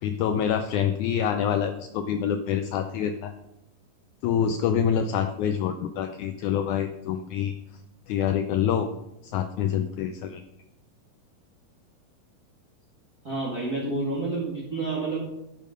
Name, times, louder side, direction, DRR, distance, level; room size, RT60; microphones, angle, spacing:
voice 1, 0.0-3.3 4.2-7.5 8.1-8.9 9.2-10.4, left 8 dB, 85° left, 8 dB, 1.7 m, -26 dB
voice 2, 13.2-15.2, right 3 dB, 35° right, -5 dB, 1.9 m, -29 dB
11.5 x 6.8 x 5.2 m, 0.90 s
omnidirectional pair, 4.1 m